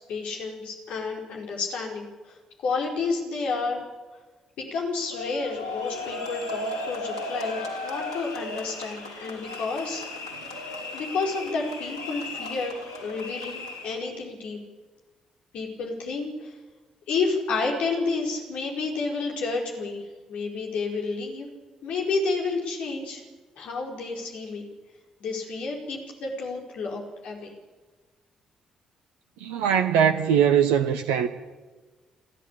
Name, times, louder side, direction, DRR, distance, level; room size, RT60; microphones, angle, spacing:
voice 1, 0.1-2.4 2.6-3.8 4.6-10.0 10.9-14.6 15.5-16.5 17.1-20.0 20.3-21.5 21.8-23.2 23.6-24.7 25.2-27.5, left 4 dB, 60° left, 4.6 m, -30 dB
sound 1, 5.1-14.0, left 2 dB, 90° right, 2.7 m, -35 dB
voice 2, 29.4-31.3, right 8 dB, 70° right, 0.9 m, -21 dB
29.0 x 11.0 x 8.6 m
figure-of-eight pair, 40°, 2 cm